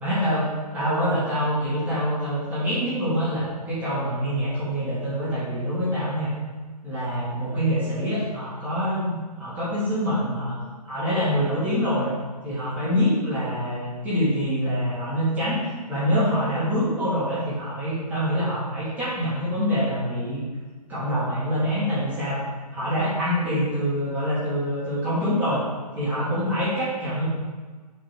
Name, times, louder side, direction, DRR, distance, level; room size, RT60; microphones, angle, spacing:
voice 1, 0.0-6.3 6.8-10.6 10.8-12.1 12.4-15.6 15.9-20.4 20.9-22.4 22.7-25.6 25.9-27.2, equal, 10° right, -12 dB, 2.3 m, -25 dB
7.4 x 5.2 x 4.6 m, 1.4 s
hypercardioid pair, 160°, 21 cm